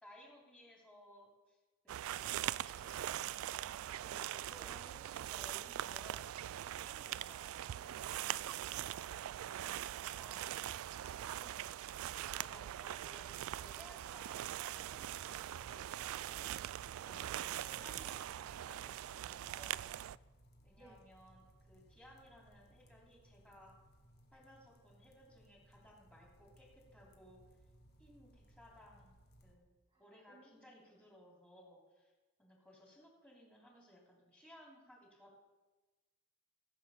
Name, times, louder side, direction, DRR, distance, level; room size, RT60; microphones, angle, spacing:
voice 1, 0.0-1.6 1.8-3.7 4.0-4.8 5.2-6.3 6.7-8.9 9.5-10.6 12.3-19.8 20.6-23.8 24.3-27.4 28.0-29.2 29.4-29.7 30.0-32.1 32.4-35.4, equal, 5° left, -2 dB, 3.0 m, -60 dB
sound 1, 1.9-20.2, right 12 dB, 75° right, 0.3 m, -42 dB
voice 2, 4.7-5.3 20.8-21.0 29.9-30.7, right 1 dB, 20° right, -2 dB, 1.9 m, -63 dB
sound 2, 15.0-29.5, equal, 50° left, 1.6 m, -65 dB
16.0 x 7.9 x 5.5 m, 1.2 s
head